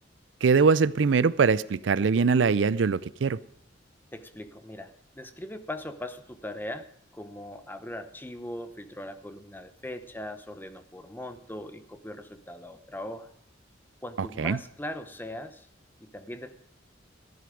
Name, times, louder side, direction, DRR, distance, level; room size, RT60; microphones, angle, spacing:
voice 1, 0.4-3.4 14.2-14.6, right 5 dB, 75° right, 0.5 m, -22 dB
voice 2, 4.1-13.3 14.0-15.7 16.0-16.5, left 1 dB, 10° left, 0.9 m, -40 dB
14.5 x 11.0 x 5.0 m
head